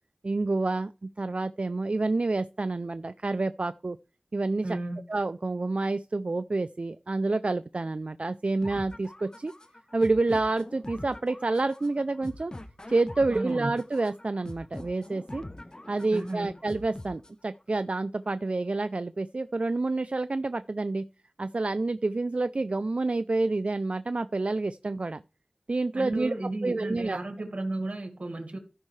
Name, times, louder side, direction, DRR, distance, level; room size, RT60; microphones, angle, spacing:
voice 1, 0.2-4.0 4.3-4.8 5.1-9.5 9.9-12.5 12.9-15.4 15.9-21.1 21.4-25.2 25.7-26.3 26.6-27.2, right 2 dB, 65° right, 0.3 m, -28 dB
voice 2, 4.6-5.0 13.3-13.8 16.1-16.5 25.9-28.6, right 2 dB, 80° right, 1.8 m, -33 dB
sound 1, 8.6-17.6, left 1 dB, 35° left, 0.8 m, -44 dB
14.5 x 5.3 x 3.2 m
wide cardioid pair, 40°, 2 cm